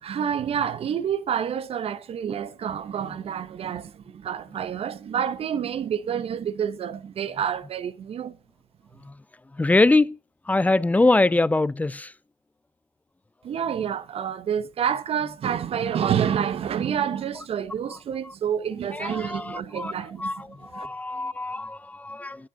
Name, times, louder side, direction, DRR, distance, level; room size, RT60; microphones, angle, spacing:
voice 1, 0.0-8.4 13.4-20.9, right 8 dB, 50° right, 0.9 m, -28 dB
voice 2, 9.6-10.1 10.5-12.1 19.3-19.9 20.2-20.3 20.7-22.4, left 2 dB, 10° left, 0.4 m, -22 dB
9.4 x 8.7 x 3.7 m
supercardioid pair, 70°, 13 cm